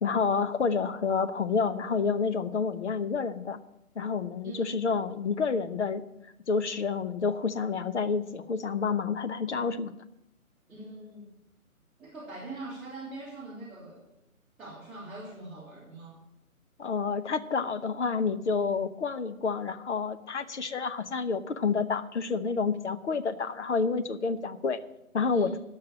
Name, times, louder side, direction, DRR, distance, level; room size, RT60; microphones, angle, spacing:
voice 1, 0.0-3.6 4.0-6.0 6.5-9.9 16.8-24.8 25.1-25.5, left 5 dB, 55° left, 9 dB, 0.9 m, -29 dB
voice 2, 4.4-4.7 10.7-11.3 12.0-14.1 14.6-16.2 25.3-25.6, right 2 dB, ahead, -15 dB, 2.9 m, -42 dB
11.0 x 6.7 x 8.0 m, 0.85 s
figure-of-eight pair, 150°, 43 cm